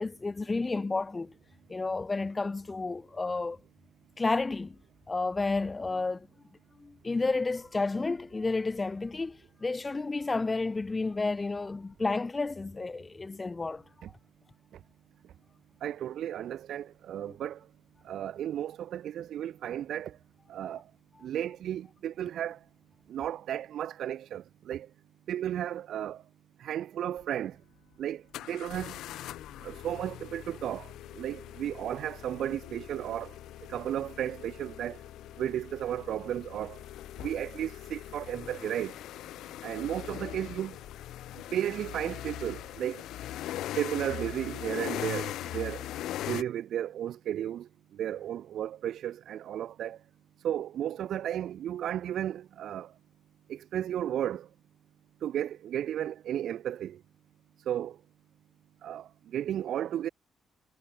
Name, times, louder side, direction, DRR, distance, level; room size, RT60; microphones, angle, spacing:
voice 1, 0.0-1.3 1.7-3.6 4.2-4.8 5.1-6.3 6.8-13.8 17.2-17.3, left 3 dB, 25° left, 0.4 m, -31 dB
voice 2, 15.8-17.7 18.0-20.2 20.5-20.9 21.2-22.7 23.1-24.9 25.3-26.3 26.6-27.6 28.0-29.0 29.5-35.0 35.4-36.8 37.2-39.0 39.6-40.8 41.3-43.0 43.8-50.0 50.4-53.0 53.5-54.5 55.2-57.0 57.6-58.0 58.8-60.1, right 11 dB, 70° right, 0.9 m, -34 dB
sound 1, 27.2-27.3 28.3-46.4, left 13 dB, 85° left, 1.8 m, -41 dB
cardioid pair, 90°, 0 cm